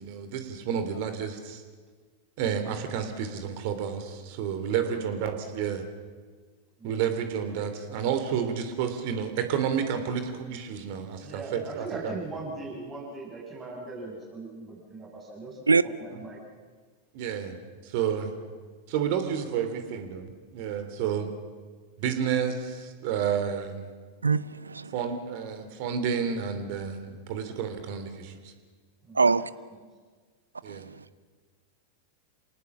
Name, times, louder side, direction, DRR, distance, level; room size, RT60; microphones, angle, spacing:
voice 1, 0.0-1.6 2.4-5.8 6.8-12.2 17.1-17.5 17.9-18.3 18.9-21.3 22.0-23.9 24.9-28.3 30.6-30.8, right 7 dB, 55° right, 3.0 m, -30 dB
voice 2, 4.7-5.1 6.8-7.1 11.2-15.6 16.0-16.4 29.0-29.5, right 3 dB, 25° right, 6.1 m, -39 dB
voice 3, 24.2-25.0 29.1-29.5 30.7-31.0, right 4 dB, 90° right, 0.6 m, -24 dB
27.0 x 18.5 x 7.3 m
hypercardioid pair, 95°, 0 cm